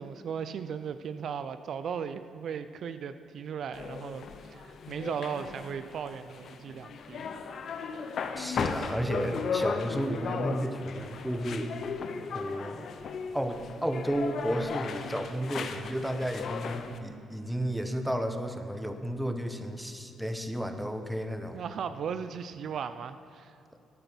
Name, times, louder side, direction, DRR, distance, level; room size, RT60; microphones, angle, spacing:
voice 1, 0.0-7.2 21.5-23.6, right 7 dB, 65° right, 11 dB, 0.5 m, -37 dB
sound 1, 3.7-17.0, left 5 dB, 60° left, 0.8 m, -36 dB
voice 2, 8.4-11.7 12.3-12.9 13.3-21.6, equal, 5° right, 7 dB, 1.1 m, -32 dB
12.5 x 9.0 x 6.1 m, 2.7 s
cardioid pair, 90°, 0 cm